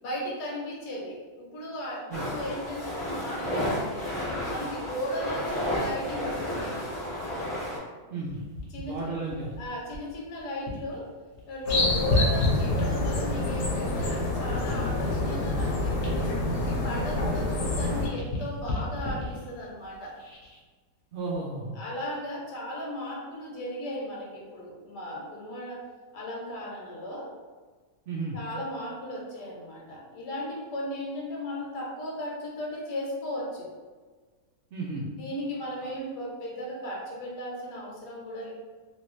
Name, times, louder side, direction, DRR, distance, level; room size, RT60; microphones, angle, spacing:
voice 1, 0.0-4.1 4.5-6.8 8.7-8.9 9.6-11.1 11.5-16.3 16.6-20.2 21.7-25.8 26.1-27.3 28.3-33.7 35.2-38.5, left 1 dB, 85° left, -3 dB, 1.4 m, -36 dB
sound 1, 2.1-7.8, left 1 dB, ahead, 1.0 m, -32 dB
voice 2, 8.1-8.4 8.8-9.5 21.1-21.8 28.1-28.4 34.7-35.1, right 3 dB, 75° right, -4 dB, 0.6 m, -33 dB
sound 2, 8.2-11.0 11.3-13.4 14.0-17.5 17.8-20.6 21.2-21.4, left 2 dB, 45° left, 0.9 m, -33 dB
sound 3, 11.7-18.1, left 2 dB, 70° left, 1.1 m, -27 dB
2.9 x 2.7 x 3.0 m, 1.4 s
omnidirectional pair, 1.7 m